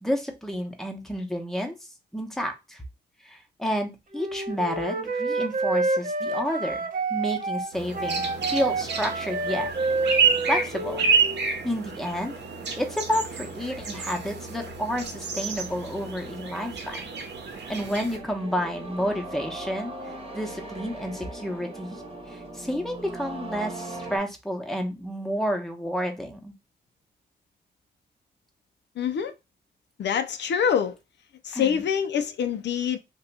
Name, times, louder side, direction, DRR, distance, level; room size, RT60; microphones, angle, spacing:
voice 1, 0.0-1.7 2.1-2.8 3.2-6.8 7.1-8.2 8.5-9.7 10.5-11.1 11.6-12.3 12.8-17.0 17.7-22.0 22.3-26.5 31.5-31.8, equal, ahead, 0.8 m, -30 dB
Wind instrument woodwind instrument, 4.1-11.6, right 3 dB, 50° right, 0.7 m, -29 dB
sound 1, 7.7-18.2, right 5 dB, 75° right, 0.8 m, -29 dB
sound 2, 17.2-24.2, right 2 dB, 30° right, 1.1 m, -39 dB
voice 2, 29.0-29.3 30.0-30.9 31.4-33.0, left 8 dB, 80° left, 0.4 m, -25 dB
2.7 x 2.2 x 4.0 m
cardioid pair, 75°, 18 cm